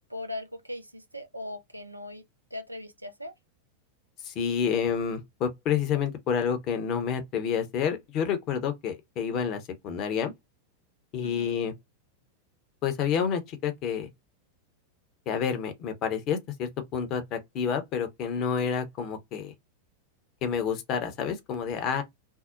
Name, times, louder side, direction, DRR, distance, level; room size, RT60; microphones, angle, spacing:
voice 1, 0.1-2.2 2.5-3.3 11.2-11.6, left 1 dB, 85° right, 0.4 m, -39 dB
voice 2, 4.2-10.3 11.1-11.7 12.8-14.1 15.3-19.5 20.4-22.0, left 7 dB, 35° left, 0.7 m, -29 dB
2.7 x 2.0 x 2.4 m
figure-of-eight pair, 90°, 0 cm